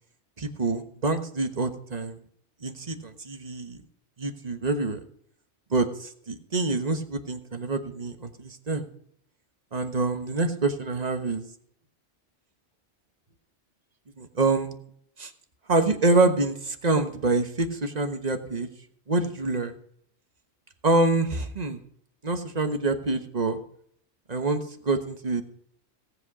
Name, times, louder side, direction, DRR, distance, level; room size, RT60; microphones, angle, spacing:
voice 1, 0.4-2.2 2.6-3.8 4.2-5.0 5.7-8.9 9.7-11.5 14.2-14.7 15.2-15.3 15.7-18.7 19.1-19.8 20.8-21.8 22.2-23.6 24.3-25.4, right 3 dB, 35° right, 7 dB, 1.3 m, -26 dB
17.5 x 8.2 x 4.9 m, 0.66 s
omnidirectional pair, 1.2 m